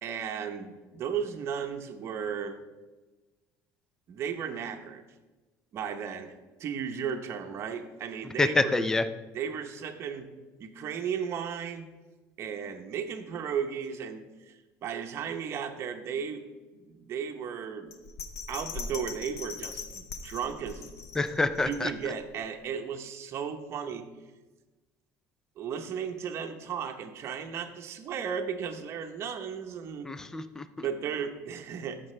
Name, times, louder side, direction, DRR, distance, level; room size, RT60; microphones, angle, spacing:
voice 1, 0.0-2.6 4.1-5.0 5.7-6.3 6.6-8.9 9.3-10.3 10.6-11.9 12.4-16.4 16.7-18.0 18.5-20.9 21.7-24.1 25.6-30.1 30.8-32.0, right 7 dB, 40° right, 6 dB, 0.8 m, -35 dB
voice 2, 8.4-9.0 21.2-21.9 30.0-30.7, left 2 dB, 10° left, 12 dB, 0.4 m, -26 dB
Bell, 17.9-22.2 22.7-22.8, left 4 dB, 45° left, 0.7 m, -41 dB
14.0 x 6.0 x 3.2 m, 1.2 s
cardioid pair, 150°, 7 cm